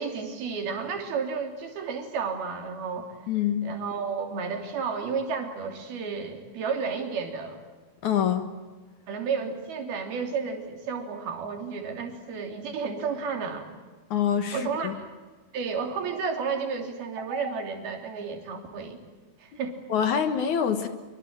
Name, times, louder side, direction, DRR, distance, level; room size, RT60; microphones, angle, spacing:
voice 1, 0.0-3.2 3.6-7.6 9.1-13.7 14.5-15.1 15.5-19.0 19.4-19.8, right 5 dB, 80° right, 4 dB, 4.9 m, -32 dB
voice 2, 3.3-3.7 8.0-8.5 14.1-14.9 19.9-20.9, left 8 dB, 60° left, 8 dB, 2.5 m, -25 dB
25.5 x 24.5 x 8.8 m, 1.3 s
omnidirectional pair, 4.4 m